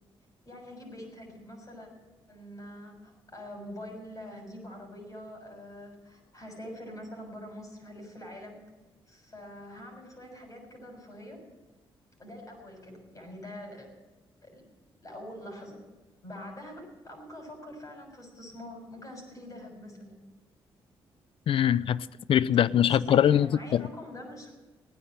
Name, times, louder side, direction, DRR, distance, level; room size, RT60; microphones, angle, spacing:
voice 1, 0.4-1.9 2.3-8.6 9.1-11.4 12.2-13.9 14.4-14.6 15.0-15.8 16.2-20.2 22.8-24.5, left 1 dB, 35° left, 6.5 m, -44 dB
voice 2, 21.5-23.8, left 10 dB, 65° left, 0.5 m, -23 dB
17.5 x 9.8 x 7.6 m
supercardioid pair, 60°, 10 cm